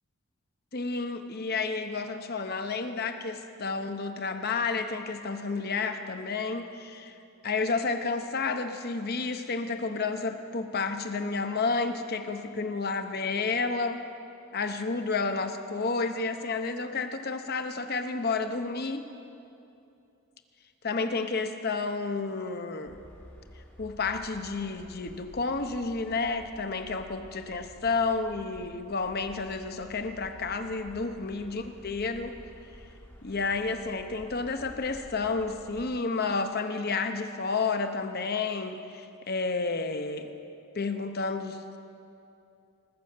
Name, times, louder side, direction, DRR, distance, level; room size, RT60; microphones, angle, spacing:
voice 1, 0.7-7.1 7.4-14.0 14.5-19.0 20.8-23.0 23.8-32.4 33.2-40.3 40.7-41.8, left 4 dB, 45° left, 7 dB, 0.8 m, -31 dB
sound 1, 22.9-36.0, equal, 10° left, 1.4 m, -51 dB
20.0 x 7.0 x 7.7 m, 2.6 s
head